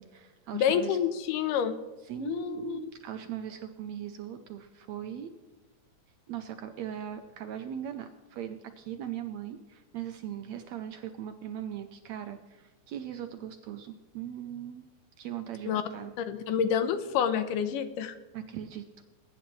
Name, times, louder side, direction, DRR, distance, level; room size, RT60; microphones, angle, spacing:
voice 1, 0.0-1.0 2.0-5.3 6.3-14.9 15.2-16.1 18.3-19.0, right 10 dB, 75° right, 7 dB, 1.6 m, -39 dB
voice 2, 0.5-1.8 2.2-2.8 15.7-15.8 16.3-18.2, left 8 dB, 85° left, 10 dB, 2.4 m, -28 dB
22.0 x 10.0 x 3.2 m, 1.3 s
omnidirectional pair, 3.8 m